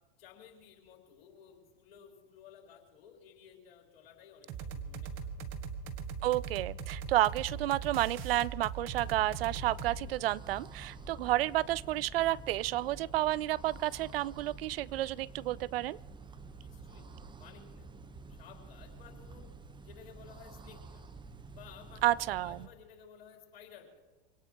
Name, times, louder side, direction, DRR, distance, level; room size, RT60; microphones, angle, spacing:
voice 1, 0.2-5.5 16.6-17.1 17.3-17.9 18.3-19.5 19.8-21.0 21.5-24.0, left 8 dB, 75° left, 1 dB, 3.7 m, -55 dB
sound 1, 4.5-10.0, right 6 dB, 45° right, 1.6 m, -40 dB
voice 2, 6.2-16.0 22.0-22.6, right 15 dB, 80° right, 23 dB, 0.5 m, -31 dB
sound 2, 8.9-22.7, right 3 dB, 15° right, 0.9 m, -49 dB
25.0 x 18.0 x 3.0 m, 1.3 s
hypercardioid pair, 95°, 29 cm